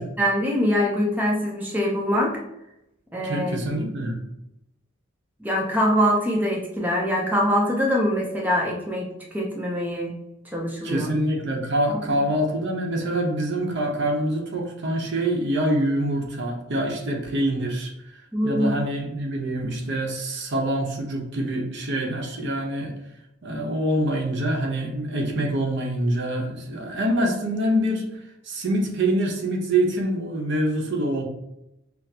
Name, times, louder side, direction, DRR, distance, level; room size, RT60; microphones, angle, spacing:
voice 1, 0.2-2.4 3.1-3.6 5.4-10.2 10.5-11.1 11.9-12.0 18.3-18.7, equal, 10° right, -2 dB, 0.6 m, -23 dB
voice 2, 3.2-4.2 10.8-18.1 18.4-22.9 23.4-31.2, right 1 dB, 60° right, 1 dB, 0.8 m, -25 dB
5.9 x 2.1 x 2.7 m, 0.85 s
head